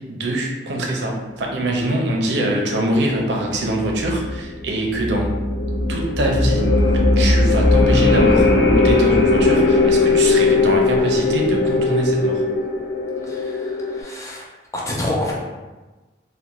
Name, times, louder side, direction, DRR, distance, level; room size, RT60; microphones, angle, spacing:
voice 1, 0.0-5.3 5.9-6.7 7.2-12.4, right 1 dB, 80° right, 0 dB, 0.5 m, -23 dB
sound 1, 3.7-14.0, left 3 dB, 75° left, 0.5 m, -18 dB
voice 2, 13.3-14.5 14.7-15.3, left 1 dB, 15° left, -3 dB, 0.4 m, -27 dB
2.4 x 2.1 x 2.9 m, 1.2 s
head